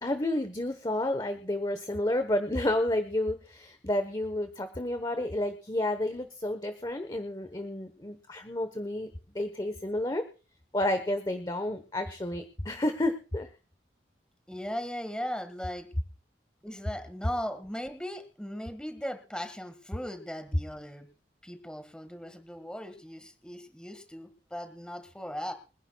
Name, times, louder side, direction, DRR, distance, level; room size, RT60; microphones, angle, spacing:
voice 1, 0.0-9.1 9.3-10.2 10.7-13.5, left 1 dB, 20° left, 9 dB, 1.1 m, -30 dB
voice 2, 14.5-15.9 16.6-21.1 21.4-25.5, equal, 5° left, 8 dB, 1.7 m, -38 dB
26.5 x 11.0 x 2.3 m, 0.34 s
head